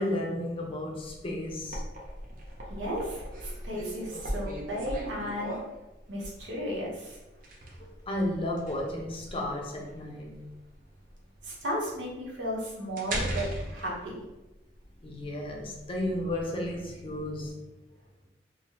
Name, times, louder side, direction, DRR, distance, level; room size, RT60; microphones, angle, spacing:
voice 1, 0.0-1.8 7.8-10.4 15.0-17.6, left 1 dB, 30° left, 0 dB, 0.5 m, -33 dB
sound 1, 1.0-17.5, right 1 dB, 50° right, 0.5 m, -39 dB
voice 2, 2.7-5.5 6.1-7.2 11.4-14.2, equal, 85° right, -4 dB, 0.9 m, -34 dB
3.0 x 2.1 x 2.9 m, 1.0 s
head